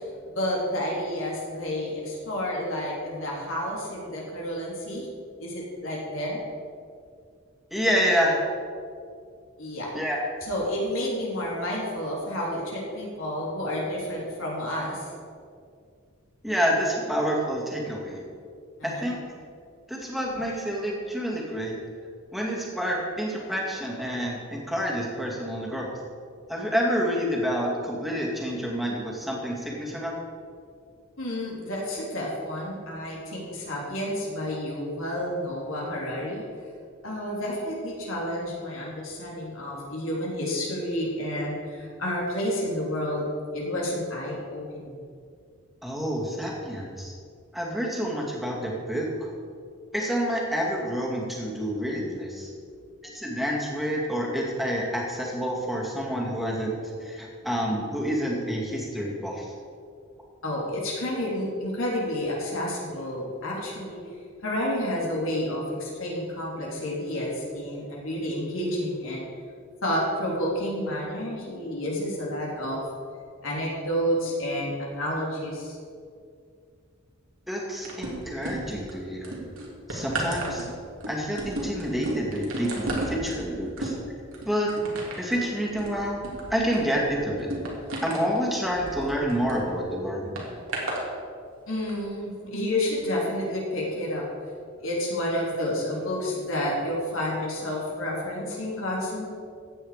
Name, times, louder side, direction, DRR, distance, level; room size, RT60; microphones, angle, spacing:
voice 1, 0.2-5.1 5.4-6.4 9.6-9.9 10.4-15.1 18.8-19.1 31.2-36.4 37.0-43.3 43.5-45.0 60.4-64.0 64.4-69.2 69.8-72.8 73.4-75.8 91.7-94.3 94.8-99.3, left 1 dB, 75° left, -3 dB, 3.4 m, -30 dB
voice 2, 7.7-8.4 9.9-10.2 16.4-18.2 18.8-19.2 19.9-21.8 22.3-25.9 26.5-30.2 45.8-47.1 47.5-49.3 49.9-52.5 53.1-56.7 57.0-59.5 77.5-79.4 79.9-80.7 81.0-83.9 84.5-84.7 85.2-86.2 86.5-87.5 88.0-90.3, equal, ahead, -3 dB, 2.3 m, -28 dB
sound 1, 77.8-78.9 79.2-89.6 90.4-91.0 91.8-91.9, right 1 dB, 80° right, 2.8 m, -34 dB
15.0 x 9.2 x 5.1 m, 2.3 s
head